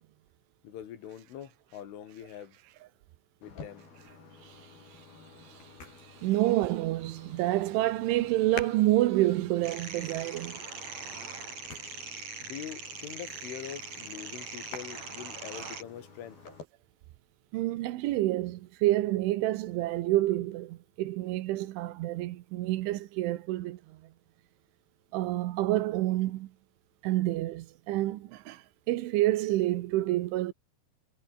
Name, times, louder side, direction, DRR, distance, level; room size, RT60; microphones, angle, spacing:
voice 1, 0.6-2.6 3.4-3.9 12.4-16.4, left 10 dB, 85° left, 5.3 m, -43 dB
sound 1, 3.4-16.7, left 4 dB, 50° left, 9.4 m, -49 dB
voice 2, 6.2-10.6 17.5-23.8 25.1-26.5 27.0-28.6 28.9-30.5, right 16 dB, 80° right, 3.5 m, -28 dB
sound 2, 9.6-15.8, right 5 dB, 35° right, 5.4 m, -41 dB
omnidirectional pair, 5.5 m